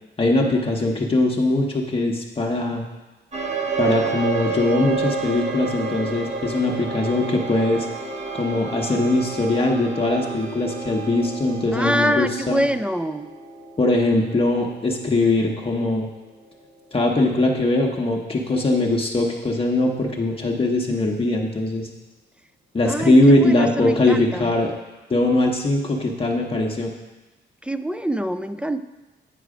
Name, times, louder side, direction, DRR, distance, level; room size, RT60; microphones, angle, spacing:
voice 1, 0.2-2.8 3.8-7.9 8.3-12.6 13.8-16.1 16.9-21.9 22.7-24.7 25.1-26.9, left 2 dB, 30° left, 0 dB, 0.9 m, -21 dB
sound 1, 3.3-18.1, right 4 dB, 35° right, 0.8 m, -31 dB
voice 2, 11.7-13.3 22.8-24.5 27.6-28.8, equal, 5° right, 11 dB, 0.3 m, -25 dB
9.2 x 4.7 x 4.9 m, 1.1 s
cardioid pair, 95°, 19 cm